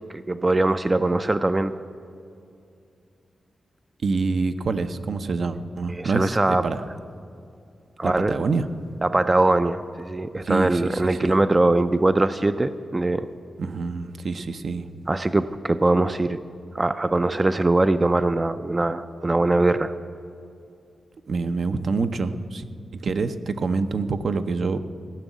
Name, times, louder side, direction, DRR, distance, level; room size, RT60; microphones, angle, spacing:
voice 1, 0.1-1.7 6.0-6.6 8.0-8.3 9.0-13.3 15.1-16.4 16.7-19.9, right 2 dB, 25° right, 11 dB, 0.4 m, -21 dB
voice 2, 4.0-6.8 8.0-8.7 10.4-11.4 13.6-14.9 21.3-22.6 22.9-24.8, right 4 dB, 65° right, 8 dB, 0.6 m, -26 dB
15.5 x 6.2 x 9.1 m, 2.5 s
wide cardioid pair, 90°, 0 cm